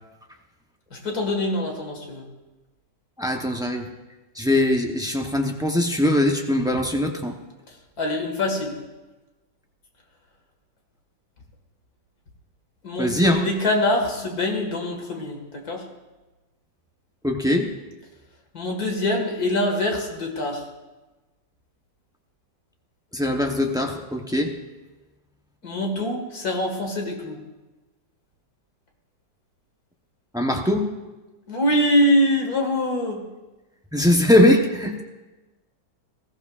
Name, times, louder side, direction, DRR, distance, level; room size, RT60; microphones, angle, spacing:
voice 1, 0.9-2.3 8.0-8.8 12.8-15.8 18.5-20.6 25.6-27.4 31.5-33.2, left 1 dB, 55° left, 2 dB, 2.3 m, -24 dB
voice 2, 3.2-3.9 4.4-7.3 13.0-13.5 17.2-17.7 23.1-24.5 30.3-30.9 33.9-35.0, left 1 dB, 5° right, 2 dB, 0.3 m, -21 dB
20.0 x 15.0 x 2.5 m, 1.1 s
omnidirectional pair, 1.9 m